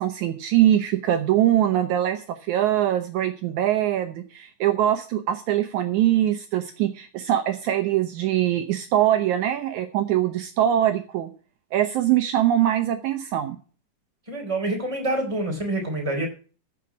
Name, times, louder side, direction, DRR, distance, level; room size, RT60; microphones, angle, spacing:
voice 1, 0.0-11.3 11.7-13.6, right 12 dB, 75° right, 8 dB, 2.1 m, -22 dB
voice 2, 14.3-16.3, right 1 dB, 10° right, 2 dB, 3.5 m, -26 dB
14.5 x 6.0 x 6.1 m, 0.37 s
omnidirectional pair, 3.6 m